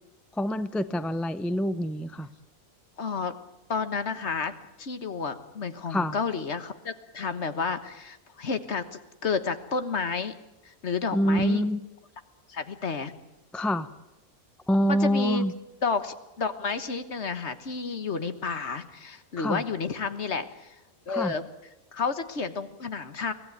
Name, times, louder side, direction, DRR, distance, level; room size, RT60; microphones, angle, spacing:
voice 1, 0.4-2.3 5.9-6.1 11.1-11.8 13.5-13.9 14.7-15.5 19.4-19.6 21.1-21.3, equal, ahead, 13 dB, 0.4 m, -26 dB
voice 2, 3.0-3.3 3.7-4.5 4.8-10.3 10.6-11.7 12.5-13.1 14.9-15.5 15.8-20.8 21.1-21.5 21.9-23.3, left 5 dB, 50° left, 11 dB, 1.6 m, -31 dB
24.5 x 17.0 x 9.4 m, 0.99 s
omnidirectional pair, 1.5 m